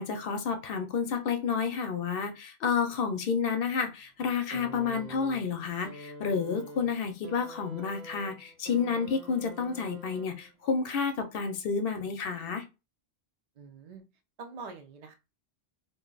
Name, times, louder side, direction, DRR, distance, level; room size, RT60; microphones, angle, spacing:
voice 1, 0.0-12.6, left 6 dB, 65° left, 0.7 m, -30 dB
sound 1, 4.5-10.7 11.7-11.8, right 3 dB, 75° right, 0.8 m, -47 dB
voice 2, 13.6-14.0 14.4-15.1, right 4 dB, 50° right, 0.5 m, -44 dB
2.6 x 2.1 x 3.8 m
omnidirectional pair, 1.1 m